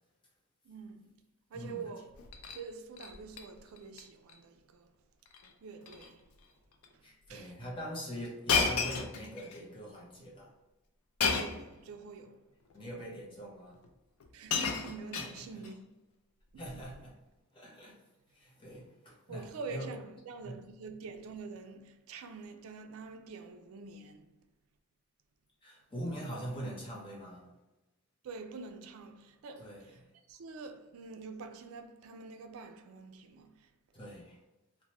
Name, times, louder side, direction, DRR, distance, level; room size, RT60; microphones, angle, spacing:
voice 1, 0.6-1.1 1.5-2.1 2.5-4.9 5.6-6.3 6.9-7.5 11.3-12.5 14.3-15.8 16.5-16.8 19.3-24.3 28.2-30.0 30.3-33.7, right 4 dB, 75° right, 0.3 m, -46 dB
Shatter, 2.1-2.6 3.0-3.4 3.8-4.0 4.3-4.4 5.3-5.5 5.8-6.1 6.8-6.9 8.5-9.6 11.2-11.7 12.7-12.8 13.8-13.9 14.2-15.7 16.7-16.9, left 5 dB, 85° left, 0.4 m, -32 dB
voice 2, 7.0-10.5 12.7-13.8 15.1-15.2 15.5-15.6 16.6-17.1 17.5-18.0 18.3-19.9 20.4-20.5 25.6-27.5 29.6-29.9 33.9-34.4, equal, 25° left, 0.7 m, -43 dB
3.1 x 2.1 x 2.9 m
head